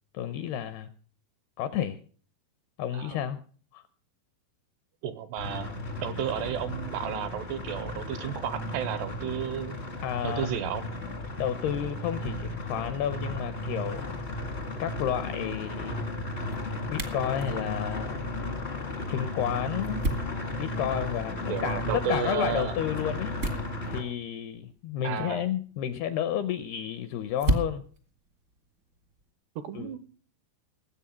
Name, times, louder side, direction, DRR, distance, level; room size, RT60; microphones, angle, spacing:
voice 1, 0.1-0.9 1.6-2.0 2.8-3.4 3.7-3.8 10.0-10.5 11.4-14.2 14.8-16.0 16.9-18.2 19.1-20.0 20.6-23.4 23.9-27.8 29.7-29.9, left 10 dB, 80° left, 11 dB, 2.4 m, -31 dB
voice 2, 5.0-9.8 10.2-10.9 21.5-22.8 25.0-25.5 29.6-30.0, right 10 dB, 80° right, 13 dB, 2.7 m, -33 dB
sound 1, 5.4-24.0, left 2 dB, 50° left, 0.7 m, -35 dB
sound 2, 14.4-29.3, right 1 dB, 55° right, 0.8 m, -38 dB
19.5 x 8.1 x 5.7 m, 0.42 s
omnidirectional pair, 5.4 m